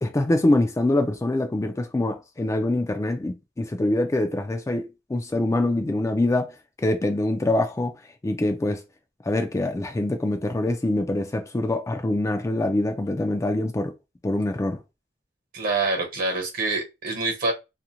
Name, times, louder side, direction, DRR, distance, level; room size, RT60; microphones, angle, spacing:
voice 1, 0.0-7.9 8.2-8.8 9.2-13.9 14.2-14.8, left 2 dB, 15° left, 0.3 m, -24 dB
voice 2, 15.5-17.5, right 3 dB, 55° right, 1.0 m, -26 dB
2.5 x 2.1 x 2.8 m
head